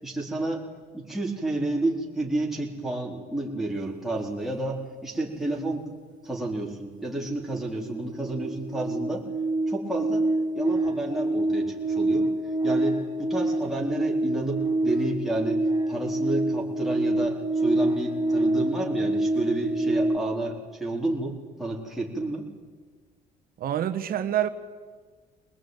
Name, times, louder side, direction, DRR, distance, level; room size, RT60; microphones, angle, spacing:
voice 1, 0.0-0.7 0.9-5.8 6.2-9.2 9.7-10.2 10.5-12.3 12.6-15.6 15.9-22.4, right 2 dB, ahead, -3 dB, 4.2 m, -30 dB
sound 1, 6.6-6.7 7.0-20.2, right 1 dB, 25° right, 4.2 m, -27 dB
voice 2, 23.6-24.5, right 11 dB, 60° right, 9 dB, 1.4 m, -26 dB
21.5 x 20.0 x 9.3 m, 1.5 s
cardioid pair, 110°, 17 cm